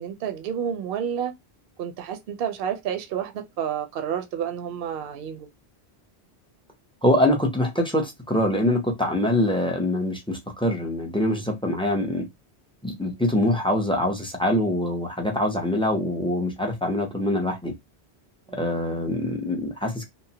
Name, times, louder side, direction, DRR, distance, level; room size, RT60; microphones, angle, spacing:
voice 1, 0.0-1.3 1.8-5.5 18.5-18.7, right 8 dB, 65° right, 0.7 m, -30 dB
voice 2, 7.0-12.2 12.8-17.7 18.6-20.1, left 1 dB, 5° left, 0.4 m, -24 dB
2.9 x 2.0 x 2.7 m
omnidirectional pair, 1.1 m